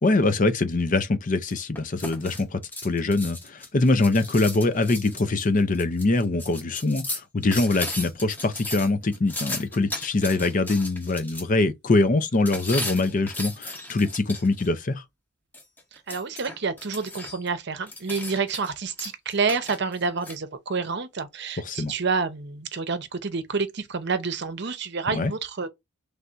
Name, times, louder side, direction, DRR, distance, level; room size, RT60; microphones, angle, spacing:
voice 1, 0.0-15.0 21.6-21.9 25.1-25.3, left 2 dB, 40° left, 0.5 m, -23 dB
sound 1, 1.5-11.4 12.5-14.7 15.5-17.5 17.8-18.7 19.0-20.4, left 1 dB, 10° left, 0.8 m, -36 dB
voice 2, 15.9-25.7, right 4 dB, 55° right, 0.7 m, -28 dB
3.4 x 2.6 x 4.4 m
head